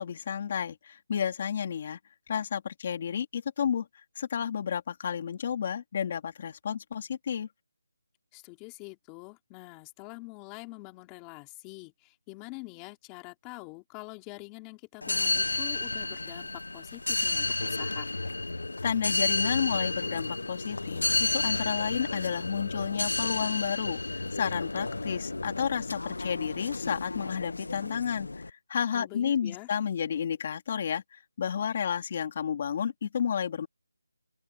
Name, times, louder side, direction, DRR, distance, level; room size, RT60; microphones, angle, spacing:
voice 1, 0.0-2.0 2.3-3.9 4.2-7.5 18.8-33.7, left 8 dB, 30° left, 3.5 m, -31 dB
voice 2, 8.3-18.1 28.9-29.7, left 25 dB, 10° left, 3.9 m, -45 dB
sound 1, 15.0-28.5, left 2 dB, 85° left, 0.9 m, -31 dB
open air
figure-of-eight pair, 170°, 0 cm